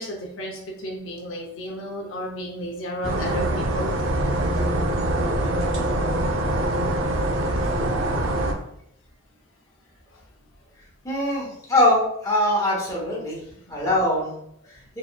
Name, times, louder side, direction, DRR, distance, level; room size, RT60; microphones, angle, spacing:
voice 1, 0.0-3.9 7.6-7.7 10.1-10.2, equal, 70° left, -1 dB, 0.7 m, -33 dB
Sound of the blood moon, 3.0-8.5, right 1 dB, 70° right, 0.6 m, -24 dB
voice 2, 11.0-13.4 13.7-14.4 14.7-14.8, left 1 dB, 15° left, -5 dB, 1.0 m, -22 dB
4.1 x 3.0 x 2.3 m, 0.73 s
head